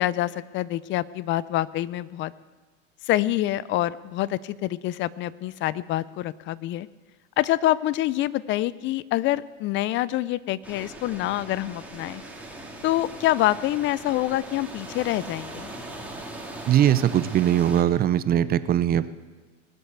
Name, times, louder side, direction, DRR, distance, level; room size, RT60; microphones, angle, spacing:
voice 1, 0.0-2.3 3.0-6.9 7.4-12.2 12.8-15.7, left 15 dB, 30° left, 20 dB, 0.4 m, -26 dB
sound 1, 10.6-17.8, right 2 dB, 5° right, 2.4 m, -40 dB
voice 2, 16.7-19.1, right 10 dB, 25° right, 14 dB, 0.6 m, -21 dB
20.5 x 8.0 x 6.8 m, 1.3 s
hypercardioid pair, 110°, 39 cm